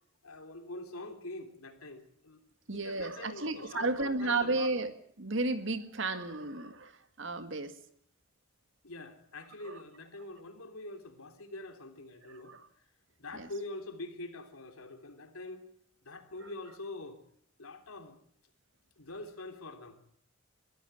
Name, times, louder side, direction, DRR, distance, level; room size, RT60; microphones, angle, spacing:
voice 1, 0.2-2.4 2.7-4.7 8.8-12.6 13.2-15.6 16.0-17.2 17.6-18.2 19.0-20.2, left 2 dB, 85° left, 6 dB, 3.4 m, -45 dB
voice 2, 2.7-4.9 5.2-6.9 7.2-7.8 9.7-9.8 12.5-12.6 13.3-13.5, right 3 dB, 60° right, 10 dB, 1.9 m, -33 dB
22.0 x 14.0 x 9.1 m, 0.63 s
head